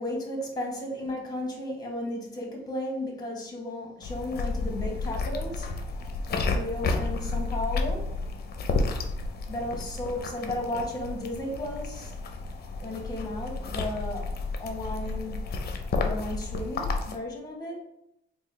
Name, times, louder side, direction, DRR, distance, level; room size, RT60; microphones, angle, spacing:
voice 1, 0.0-5.7 6.3-8.1 9.5-12.1 12.8-14.3 14.6-15.5 16.0-17.8, left 1 dB, 20° left, 0 dB, 1.2 m, -34 dB
sound 1, 4.0-17.2, left 3 dB, 50° left, 0.5 m, -31 dB
3.7 x 2.3 x 3.3 m, 0.79 s
cardioid pair, 90°, 20 cm